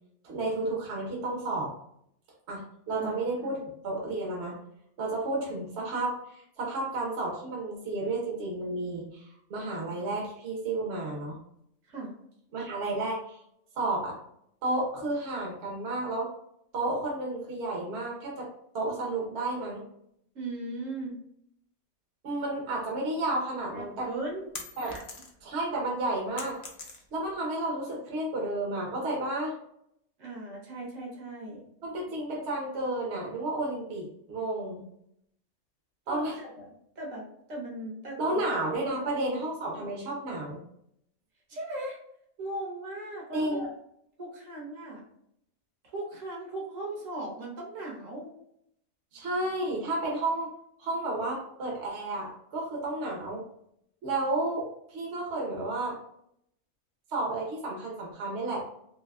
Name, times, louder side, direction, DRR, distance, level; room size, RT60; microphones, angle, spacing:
voice 1, 0.2-1.7 2.5-3.6 3.8-4.6 5.0-11.4 12.5-13.4 13.8-14.2 14.6-16.3 16.7-18.5 18.7-19.8 22.2-24.1 24.8-24.9 25.4-26.6 27.1-29.5 31.8-34.8 36.1-36.4 38.2-40.6 43.3-43.6 49.1-50.5 50.8-53.4 54.0-56.0 57.1-58.6, right 2 dB, 55° right, -2 dB, 1.0 m, -32 dB
voice 2, 3.0-3.6 11.8-12.1 20.3-21.2 23.7-24.5 24.8-25.0 30.2-31.6 36.1-36.7 36.9-38.4 39.0-39.1 39.7-39.9 41.5-42.0 42.4-43.7 44.2-45.0 45.9-48.3, right 1 dB, 75° right, -2 dB, 1.4 m, -38 dB
sound 1, 23.7-25.6 25.9-27.4, left 3 dB, 50° left, 0.5 m, -43 dB
3.4 x 3.0 x 2.3 m, 0.73 s
omnidirectional pair, 1.4 m